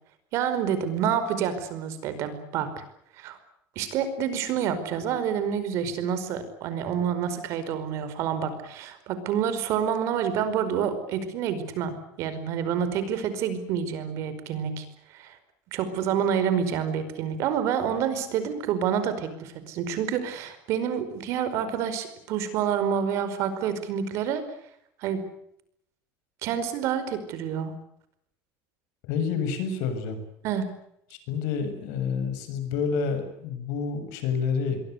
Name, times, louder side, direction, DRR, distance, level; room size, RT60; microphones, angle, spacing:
voice 1, 0.3-2.7 3.2-3.4 3.7-14.8 15.1-15.4 15.7-24.4 25.0-25.2 26.4-27.7 30.4-30.7, right 8 dB, 55° right, 11 dB, 5.0 m, -28 dB
voice 2, 29.0-30.2 31.3-34.8, left 6 dB, 75° left, 10 dB, 7.0 m, -28 dB
28.0 x 23.0 x 8.1 m, 0.74 s
cardioid pair, 175°, 6 cm